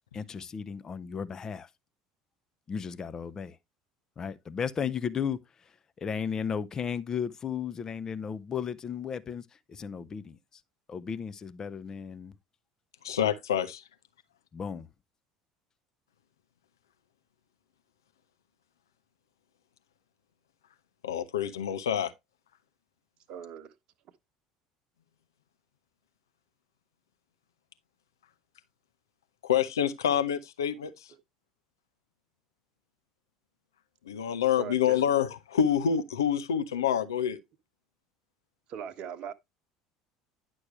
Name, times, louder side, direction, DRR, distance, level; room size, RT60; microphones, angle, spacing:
voice 1, 0.1-1.7 2.7-3.6 4.2-5.4 6.0-10.6 10.9-12.3 14.5-14.9, left 7 dB, 30° left, 0.7 m, -35 dB
voice 2, 13.0-13.8 21.0-22.1 29.4-31.1 34.0-37.4, left 9 dB, 70° left, 0.7 m, -27 dB
voice 3, 23.3-23.7 30.1-30.2 34.6-35.0 38.7-39.3, right 8 dB, 45° right, 1.0 m, -40 dB
10.5 x 6.2 x 3.1 m
figure-of-eight pair, 65°, 2 cm